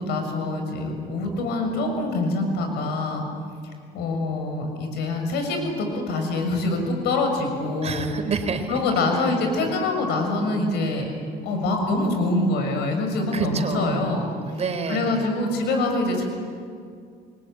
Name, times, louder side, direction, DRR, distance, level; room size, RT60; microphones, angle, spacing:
voice 1, 0.0-3.2 3.9-8.1 8.7-11.1 11.4-14.3 14.9-16.2, left 2 dB, 85° left, 4 dB, 6.7 m, -25 dB
voice 2, 7.8-8.8 9.1-9.3 13.3-15.2, right 5 dB, 40° right, 7 dB, 3.8 m, -29 dB
28.0 x 22.5 x 9.4 m, 2.3 s
cardioid pair, 110°, 17 cm